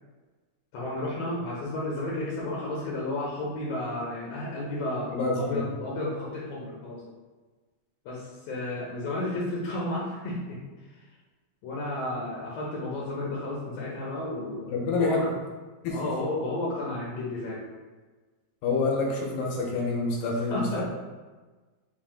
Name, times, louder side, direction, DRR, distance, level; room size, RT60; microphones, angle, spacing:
voice 1, 0.7-7.0 8.0-10.6 11.6-15.3 15.9-17.6 20.5-20.8, left 1 dB, 75° left, -5 dB, 1.5 m, -32 dB
voice 2, 5.1-5.6 14.7-15.3 15.8-16.1 18.6-20.8, left 3 dB, 90° left, -2 dB, 2.6 m, -27 dB
6.0 x 2.4 x 3.6 m, 1.3 s
omnidirectional pair, 4.0 m